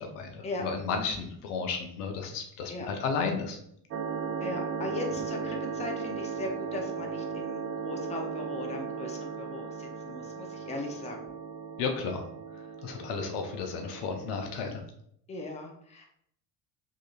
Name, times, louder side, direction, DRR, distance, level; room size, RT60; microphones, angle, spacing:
voice 1, 0.0-3.6 11.8-12.2 12.5-14.8, left 5 dB, 65° left, 4 dB, 0.8 m, -33 dB
sound 1, 3.9-14.7, right 6 dB, 30° right, 0.4 m, -37 dB
voice 2, 4.4-11.2 15.3-16.1, left 2 dB, 15° left, 1 dB, 0.6 m, -38 dB
3.7 x 3.1 x 2.4 m, 0.70 s
figure-of-eight pair, 65°, 49 cm